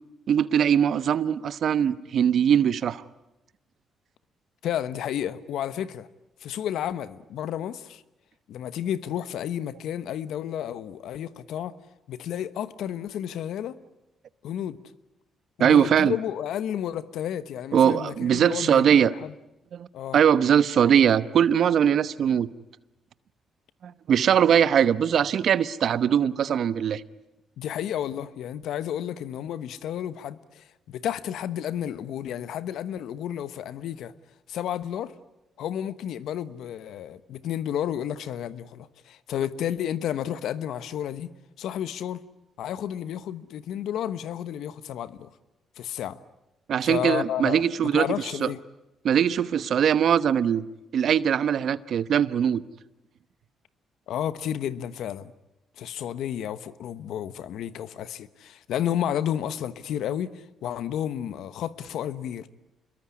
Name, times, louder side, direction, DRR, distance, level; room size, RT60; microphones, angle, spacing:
voice 1, 0.3-3.0 15.6-16.2 17.7-19.1 19.7-19.9 20.1-22.5 23.8-27.0 46.7-48.1 48.4-48.5 49.0-50.6 50.9-52.6, right 8 dB, 65° right, 1.0 m, -21 dB
voice 2, 4.6-6.1 6.4-8.0 8.5-11.8 12.1-13.8 14.4-14.8 15.6-19.3 19.9-20.2 27.6-34.1 34.5-35.1 35.6-41.3 41.6-42.2 42.6-45.3 45.8-46.2 46.8-47.6 47.9-48.6 54.1-55.3 55.8-62.5, left 10 dB, 80° left, 1.1 m, -31 dB
27.5 x 22.0 x 9.8 m
cardioid pair, 75°, 0 cm